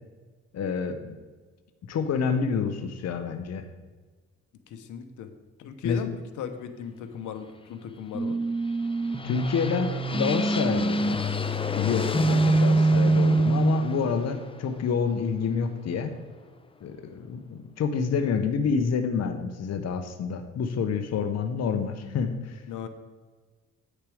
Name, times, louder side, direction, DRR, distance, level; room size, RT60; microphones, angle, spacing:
voice 1, 0.5-1.2 1.9-3.7 5.8-6.0 9.2-11.2 11.8-16.1 16.8-22.6, left 6 dB, 60° left, 7 dB, 1.0 m, -28 dB
voice 2, 4.7-5.3 5.6-6.1 6.4-8.4 12.3-12.5 22.7-22.9, left 8 dB, 80° left, 7 dB, 1.0 m, -36 dB
sound 1, 8.1-14.1, right 2 dB, 5° left, 1.2 m, -25 dB
sound 2, 8.5-16.4, left 4 dB, 20° left, 0.7 m, -35 dB
9.0 x 6.6 x 5.0 m, 1.4 s
cardioid pair, 90°, 30 cm